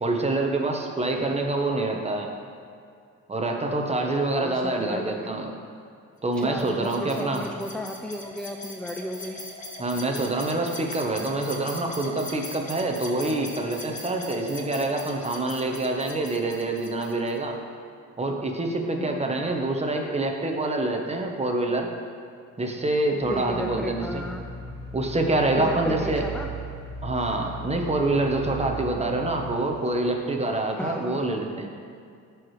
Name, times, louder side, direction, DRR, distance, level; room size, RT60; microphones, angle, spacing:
voice 1, 0.0-2.3 3.3-5.5 6.2-7.4 9.8-17.6 18.2-21.9 22.6-24.2 24.9-26.2 27.0-31.7, right 2 dB, 20° right, 2 dB, 1.1 m, -26 dB
voice 2, 4.3-5.3 6.4-9.4 18.9-19.3 23.3-24.5 25.6-26.5 30.7-31.3, left 1 dB, 5° left, 3 dB, 0.3 m, -34 dB
sound 1, 6.3-17.4, left 2 dB, 25° left, 1.3 m, -40 dB
sound 2, 23.2-29.6, right 3 dB, 50° right, 1.4 m, -37 dB
13.5 x 4.7 x 3.3 m, 2.3 s
cardioid pair, 90°, 30 cm